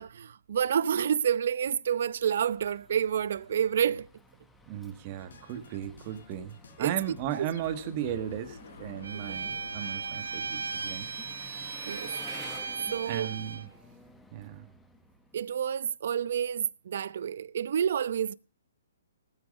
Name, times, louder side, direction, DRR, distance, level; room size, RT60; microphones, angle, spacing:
voice 1, 0.0-4.1 6.8-7.0 7.3-7.5 11.9-12.1 12.9-13.3 15.3-18.4, right 8 dB, 55° right, 0.7 m, -29 dB
Engine, 2.0-15.6, left 2 dB, 5° left, 1.2 m, -53 dB
voice 2, 4.7-11.1 13.1-13.7 14.3-14.7, right 11 dB, 30° right, 1.6 m, -36 dB
sound 1, 5.2-11.5, left 4 dB, 75° left, 4.3 m, -50 dB
Bowed string instrument, 9.0-13.7, right 5 dB, 85° right, 1.0 m, -37 dB
18.5 x 9.0 x 5.3 m
hypercardioid pair, 160°, 0 cm